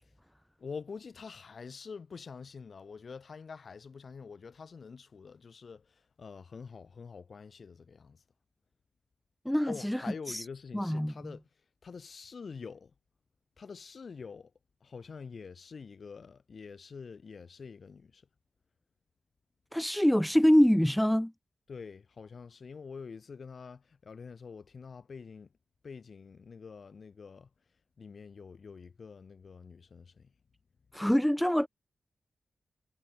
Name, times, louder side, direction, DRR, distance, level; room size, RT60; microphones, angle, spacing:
voice 1, 0.6-8.2 9.7-11.5 11.8-12.9 13.6-14.5 14.8-18.3 21.7-25.5 25.8-27.5 28.0-30.3, left 5 dB, 55° left, 6.8 m, -46 dB
voice 2, 9.5-10.0 10.3-10.4 10.7-11.1 19.7-21.3 30.9-31.7, equal, 5° left, 0.7 m, -25 dB
wide cardioid pair, 115°, 0 cm